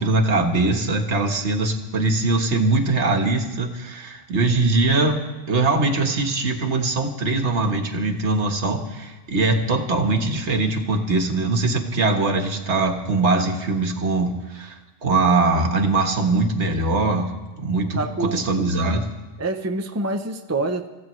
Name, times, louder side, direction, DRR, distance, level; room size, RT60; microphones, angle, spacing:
voice 1, 0.0-17.3 17.6-19.0, right 3 dB, 65° right, 5 dB, 1.6 m, -22 dB
voice 2, 18.0-18.5 19.4-20.9, right 2 dB, 15° right, 6 dB, 0.5 m, -26 dB
26.0 x 15.0 x 3.1 m, 1.2 s
omnidirectional pair, 1.3 m